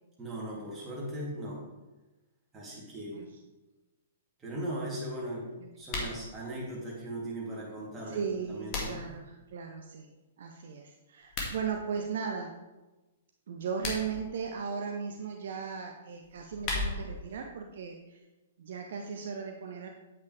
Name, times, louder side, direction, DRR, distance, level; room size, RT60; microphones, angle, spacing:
voice 1, 0.2-1.7 2.5-3.2 4.4-8.2 8.5-9.0, right 1 dB, 15° right, -5 dB, 2.8 m, -38 dB
sound 1, 5.8-6.2 8.2-9.2 11.2-11.6 13.6-14.2 16.2-17.2, left 3 dB, 35° left, 2.0 m, -36 dB
voice 2, 8.1-10.1 10.4-12.5 13.5-18.2 18.6-19.9, right 6 dB, 55° right, 3 dB, 0.7 m, -37 dB
8.7 x 8.2 x 3.3 m, 1.1 s
figure-of-eight pair, 115°, 0 cm